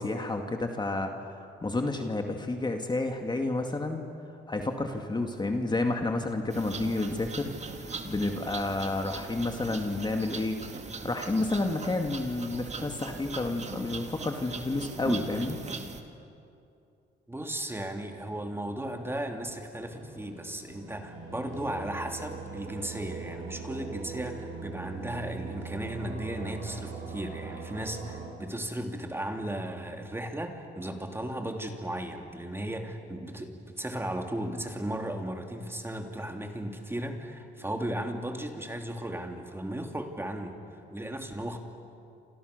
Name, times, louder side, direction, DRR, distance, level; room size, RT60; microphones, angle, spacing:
voice 1, 0.0-4.1 4.5-10.6 11.0-15.6, left 2 dB, 20° left, 4 dB, 2.3 m, -30 dB
sound 1, 6.5-16.0, right 4 dB, 35° right, 2.3 m, -40 dB
voice 2, 17.3-40.6 40.9-41.6, right 1 dB, 10° right, 4 dB, 2.9 m, -36 dB
sound 2, 19.8-28.3, right 4 dB, 85° right, 7.8 m, -41 dB
29.0 x 27.0 x 6.8 m, 2.6 s
cardioid pair, 90°, 20 cm